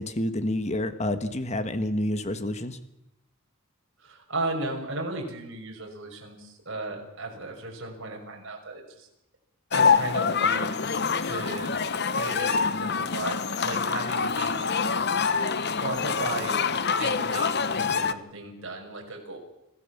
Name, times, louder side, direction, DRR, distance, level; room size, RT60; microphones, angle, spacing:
voice 1, 0.0-2.8, left 1 dB, 30° left, 10 dB, 1.4 m, -28 dB
voice 2, 4.0-9.1 9.7-10.8 11.2-11.7 12.1-13.4 13.6-14.7 15.7-16.6 17.0-19.4, right 2 dB, 60° right, 1 dB, 5.9 m, -35 dB
sound 1, 9.7-18.1, left 5 dB, 50° left, 0.9 m, -25 dB
25.5 x 16.5 x 7.3 m, 0.86 s
head